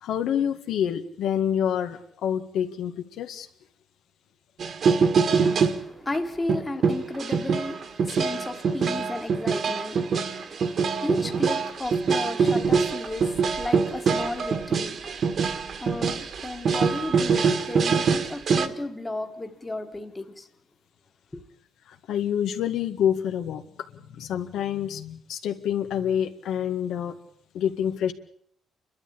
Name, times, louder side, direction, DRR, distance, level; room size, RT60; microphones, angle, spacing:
voice 1, 0.0-3.5 8.7-8.8 21.9-23.7 23.9-27.1 27.5-28.1, left 9 dB, 90° left, 1.9 m, -27 dB
sound 1, 4.6-5.8 6.1-6.2 6.5-18.7, right 5 dB, 45° right, 1.7 m, -24 dB
voice 2, 5.2-20.5 21.3-21.4, left 2 dB, 10° left, 1.5 m, -35 dB
30.0 x 12.5 x 8.8 m
cardioid pair, 180°, 0 cm